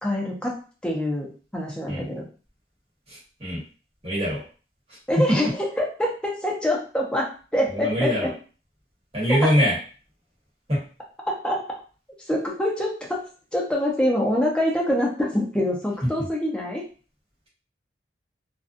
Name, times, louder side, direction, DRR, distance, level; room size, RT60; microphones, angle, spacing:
voice 1, 0.0-0.6 0.8-2.2 5.1-6.1 6.4-8.3 9.3-9.5 11.3-11.6 12.3-13.2 13.5-16.9, left 1 dB, 5° left, -2 dB, 0.6 m, -25 dB
voice 2, 3.1-3.6 4.0-4.4 7.7-8.3 9.1-9.8 10.7-10.8, equal, 35° right, -7 dB, 1.3 m, -23 dB
2.6 x 2.3 x 2.5 m, 0.37 s
head